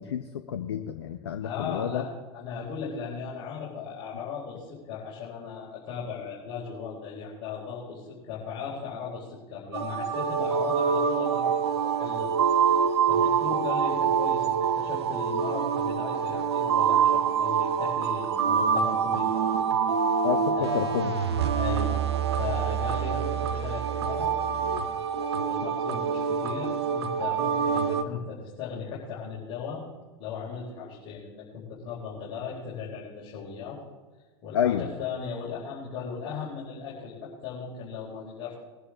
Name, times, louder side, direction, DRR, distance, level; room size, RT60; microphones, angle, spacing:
voice 1, 0.0-2.0 20.2-21.1 34.5-34.8, left 9 dB, 65° left, 8 dB, 0.8 m, -29 dB
voice 2, 1.4-12.3 12.7-12.8 13.1-19.6 20.6-20.8 21.5-22.0 22.4-29.8 30.2-33.8 34.4-38.5, left 6 dB, 40° left, -6 dB, 4.3 m, -37 dB
sound 1, 9.7-28.0, right 7 dB, 70° right, 0.9 m, -26 dB
21.5 x 11.0 x 3.7 m, 1.4 s
figure-of-eight pair, 90°, 14 cm